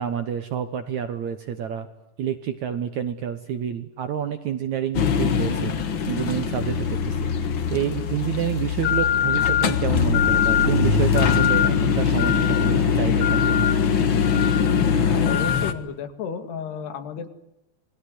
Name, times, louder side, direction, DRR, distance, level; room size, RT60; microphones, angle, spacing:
voice 1, 0.0-1.9 2.2-5.7 6.1-7.3 7.7-13.7, right 9 dB, 65° right, 9 dB, 2.0 m, -28 dB
sound 1, 4.9-15.7, left 7 dB, 60° left, 1.2 m, -21 dB
voice 2, 15.1-17.3, left 7 dB, 80° left, 9 dB, 4.1 m, -32 dB
28.0 x 20.5 x 9.8 m, 0.86 s
omnidirectional pair, 4.7 m